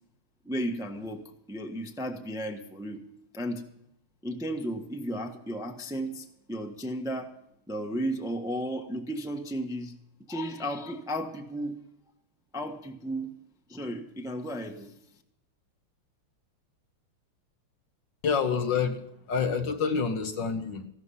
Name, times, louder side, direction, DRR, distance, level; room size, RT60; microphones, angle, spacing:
voice 1, 0.4-1.2 1.5-3.0 3.3-3.6 4.2-7.3 7.7-9.9 10.3-11.7 12.5-13.3 13.7-14.9, equal, ahead, 4 dB, 0.9 m, -34 dB
voice 2, 18.2-20.9, left 6 dB, 60° left, 7 dB, 1.7 m, -28 dB
15.5 x 12.5 x 5.6 m, 0.77 s
omnidirectional pair, 2.4 m